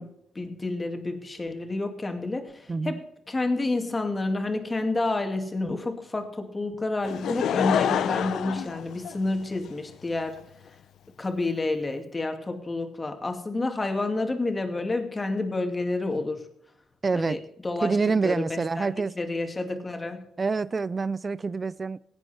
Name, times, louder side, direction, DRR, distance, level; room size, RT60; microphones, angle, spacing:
voice 1, 0.0-3.0 3.3-10.4 11.2-16.4 17.1-18.9 19.2-20.3, left 2 dB, 25° left, 2.3 m, -29 dB
voice 2, 2.7-3.0 17.0-17.4 17.8-19.1 20.4-22.0, right 4 dB, 35° right, 0.5 m, -26 dB
Laughter / Crowd, 7.0-9.7 10.4-10.5, left 9 dB, 75° left, 0.8 m, -27 dB
17.0 x 9.3 x 4.4 m
cardioid pair, 75°, 0 cm